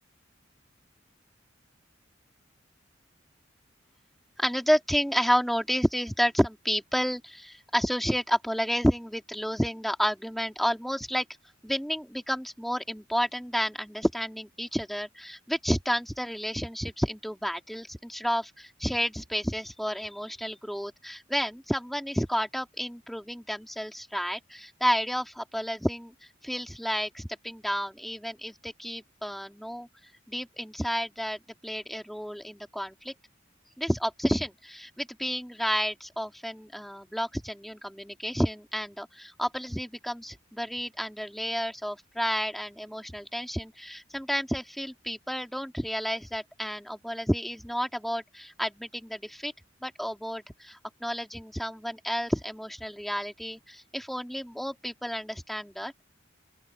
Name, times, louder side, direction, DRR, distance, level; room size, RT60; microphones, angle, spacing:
voice 1, 4.4-11.2 11.6-26.1 26.4-29.9 30.3-33.1 33.8-49.5 49.8-55.9, equal, ahead, 2.1 m, -30 dB
open air
head